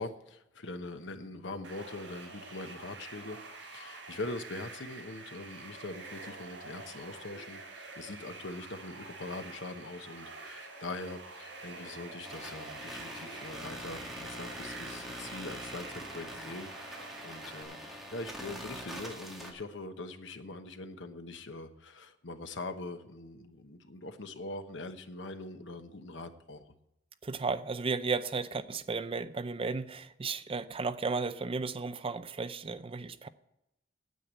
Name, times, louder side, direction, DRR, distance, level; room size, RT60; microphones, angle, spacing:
voice 1, 0.0-16.7 17.2-26.6, left 2 dB, 70° left, 8 dB, 1.0 m, -42 dB
sound 1, 1.6-17.6, right 3 dB, 80° right, 4.0 m, -47 dB
sound 2, 12.2-19.5, equal, ahead, 1.9 m, -44 dB
voice 2, 27.2-33.3, right 4 dB, 30° right, 13 dB, 0.5 m, -34 dB
9.2 x 8.6 x 8.1 m, 0.86 s
head